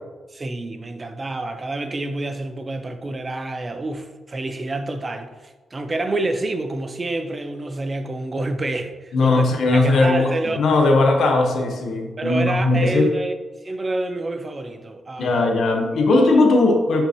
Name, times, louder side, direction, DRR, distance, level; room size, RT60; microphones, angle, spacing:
voice 1, 0.3-9.4 9.7-10.6 12.2-13.3 13.6-15.5 16.1-16.4, right 2 dB, 25° right, 0.5 m, -28 dB
voice 2, 9.1-10.3 10.6-13.1 15.2-17.1, left 2 dB, 60° left, 1.1 m, -18 dB
6.7 x 5.7 x 3.0 m
wide cardioid pair, 145°, 0 cm